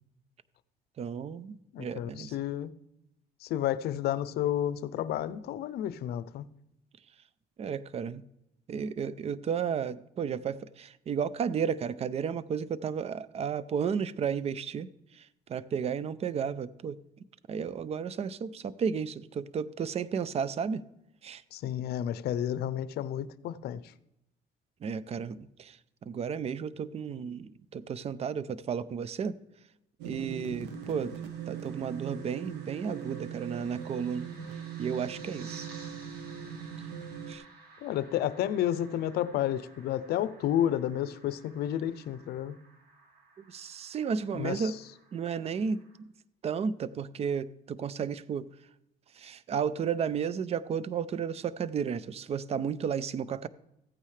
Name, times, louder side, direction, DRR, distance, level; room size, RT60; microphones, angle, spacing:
voice 1, 1.0-2.3 7.6-8.2 8.7-14.9 15.5-17.0 17.5-20.8 21.2-21.4 24.8-25.8 26.0-29.3 30.0-31.1 31.5-34.3 34.8-35.7 37.3-37.4 43.4-44.8 45.1-46.1 46.4-48.5 49.2-53.5, right 7 dB, 40° right, 0.5 m, -33 dB
voice 2, 1.7-2.7 3.4-6.5 21.5-23.9 37.8-42.6 44.3-44.8, left 11 dB, 70° left, 0.6 m, -31 dB
sound 1, 30.0-37.3, right 7 dB, 90° right, 1.2 m, -40 dB
sound 2, 30.6-46.0, right 3 dB, 65° right, 2.6 m, -55 dB
15.0 x 9.0 x 3.3 m
cardioid pair, 110°, 17 cm